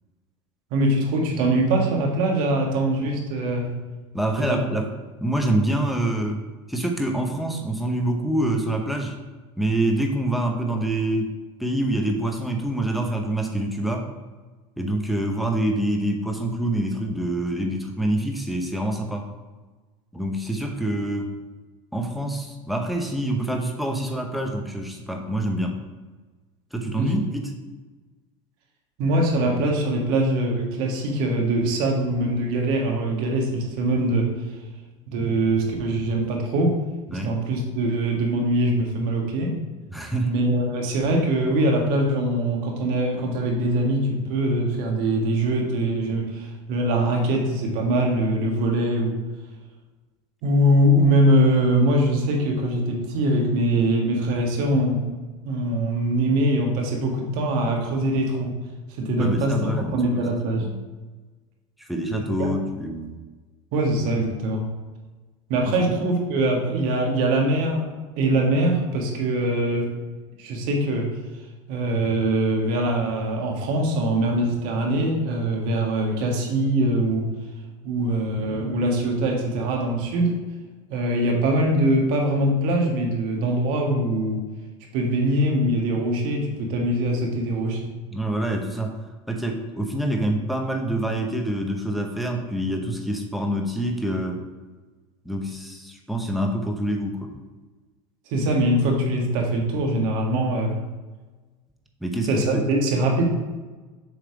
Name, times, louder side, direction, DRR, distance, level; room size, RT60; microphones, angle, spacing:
voice 1, 0.7-3.7 4.4-4.6 26.9-27.2 29.0-34.3 35.1-36.7 37.1-39.6 40.2-49.2 50.4-55.1 55.4-58.5 58.9-60.7 62.4-62.5 63.7-64.7 65.5-67.8 68.2-69.9 70.4-71.1 71.7-77.3 77.8-80.3 80.9-84.4 84.9-87.9 98.3-100.8 102.2-103.2, right 1 dB, 65° right, 0 dB, 1.6 m, -22 dB
voice 2, 4.1-4.9 5.2-6.4 6.7-9.2 9.6-11.3 11.6-14.1 14.8-19.3 20.1-21.3 21.9-25.8 26.7-27.5 37.1-37.3 39.9-40.3 59.2-60.2 60.6-60.8 61.8-63.1 65.7-66.0 88.1-89.0 89.3-94.4 95.2-97.3 102.0-102.6, right 1 dB, ahead, 2 dB, 0.9 m, -26 dB
7.2 x 3.3 x 4.7 m, 1.3 s
supercardioid pair, 110°, 16 cm